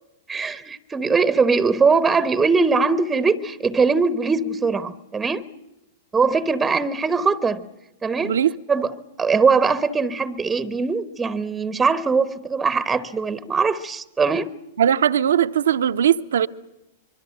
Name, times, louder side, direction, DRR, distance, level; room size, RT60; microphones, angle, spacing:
voice 1, 0.3-5.4 6.1-7.7 8.0-8.3 8.7-14.5, right 4 dB, 15° right, 0.9 m, -21 dB
voice 2, 8.2-8.5 14.8-16.5, right 9 dB, 70° right, 0.8 m, -19 dB
25.0 x 22.5 x 7.7 m
figure-of-eight pair, 100°, 0 cm